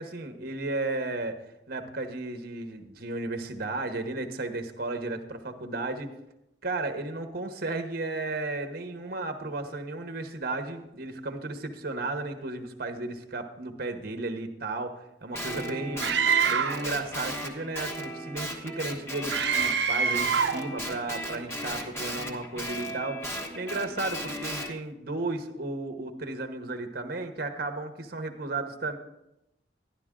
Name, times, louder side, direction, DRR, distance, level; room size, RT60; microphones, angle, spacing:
voice 1, 0.0-1.4 1.7-6.1 6.6-16.1 16.5-29.0, right 2 dB, 55° right, 7 dB, 1.1 m, -34 dB
Guitar, 15.3-19.8 20.1-24.7, equal, 15° left, 1.3 m, -36 dB
Screaming, 16.0-16.9 19.3-20.7, right 6 dB, 70° right, 0.7 m, -25 dB
11.5 x 11.5 x 3.7 m, 0.87 s
head